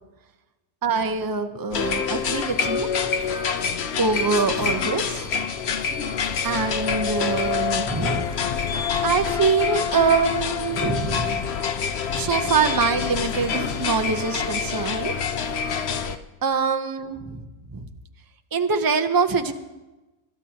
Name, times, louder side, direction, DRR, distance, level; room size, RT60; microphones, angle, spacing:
voice 1, 0.8-2.9 4.0-5.3 6.4-8.3 9.0-11.5 11.7-11.9 12.1-15.1 15.6-15.8 16.4-17.4 17.7-17.9 18.5-19.5, right 5 dB, 20° right, 6 dB, 0.6 m, -24 dB
sound 1, 1.7-16.2, left 6 dB, 55° left, 0.8 m, -26 dB
27.5 x 12.5 x 2.9 m, 1.1 s
omnidirectional pair, 1.6 m